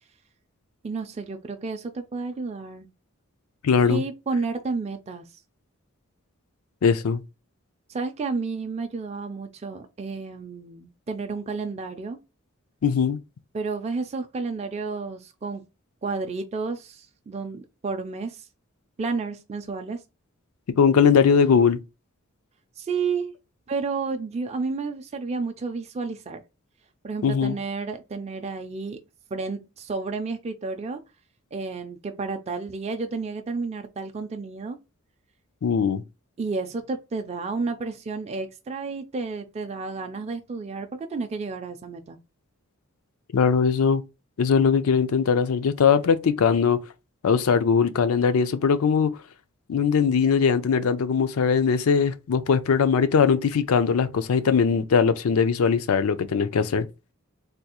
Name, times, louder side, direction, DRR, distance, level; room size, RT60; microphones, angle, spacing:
voice 1, 0.8-2.9 3.9-5.3 7.9-12.2 13.5-15.6 16.0-18.5 19.0-20.0 22.8-23.3 23.7-26.4 27.0-29.0 29.3-31.0 31.5-34.8 36.4-42.2, right 4 dB, 30° right, 0.4 m, -31 dB
voice 2, 3.6-4.0 6.8-7.2 12.8-13.2 20.8-21.8 27.2-27.6 35.6-36.0 43.3-44.0 44.4-46.8 47.2-49.1 49.7-56.9, left 6 dB, 85° left, 0.4 m, -20 dB
3.4 x 2.3 x 2.9 m
head